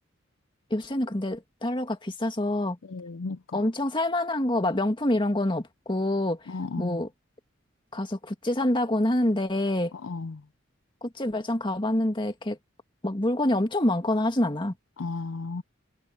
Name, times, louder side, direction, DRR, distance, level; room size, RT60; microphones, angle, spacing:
voice 1, 0.7-2.8 3.5-6.4 6.8-7.1 7.9-9.9 11.0-12.6 13.0-14.7, left 1 dB, 25° left, 2.1 m, -26 dB
voice 2, 2.9-3.4 6.5-7.0 10.0-10.4 15.0-15.6, left 3 dB, 75° left, 0.6 m, -34 dB
head